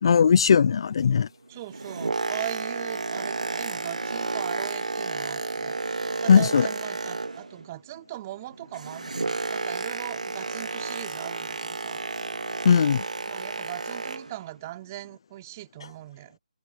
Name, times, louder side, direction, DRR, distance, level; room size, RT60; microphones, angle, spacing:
voice 1, 0.0-1.3 6.3-6.7 12.6-13.0, left 6 dB, 40° left, 0.4 m, -18 dB
voice 2, 1.5-12.0 13.3-16.4, right 16 dB, 25° right, 3.2 m, -40 dB
Boat Water vehicle, 1.5-7.7 8.0-14.4 15.0-15.2, right 3 dB, 75° right, 2.0 m, -32 dB
open air
figure-of-eight pair, 155°, 4 cm